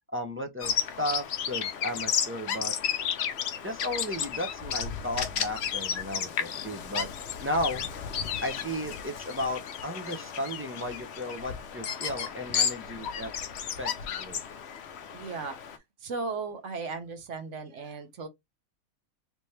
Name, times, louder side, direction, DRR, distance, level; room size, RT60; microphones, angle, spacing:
voice 1, 0.1-2.7 3.6-7.1 7.4-7.9 8.4-13.3 13.8-14.4, left 1 dB, 15° right, 0.4 m, -34 dB
Bird vocalization bird call bird song, 0.6-15.8, left 8 dB, 60° left, 0.8 m, -33 dB
voice 2, 15.1-15.6 16.0-18.3, right 4 dB, 60° right, 1.2 m, -36 dB
3.4 x 2.8 x 3.2 m
omnidirectional pair, 1.4 m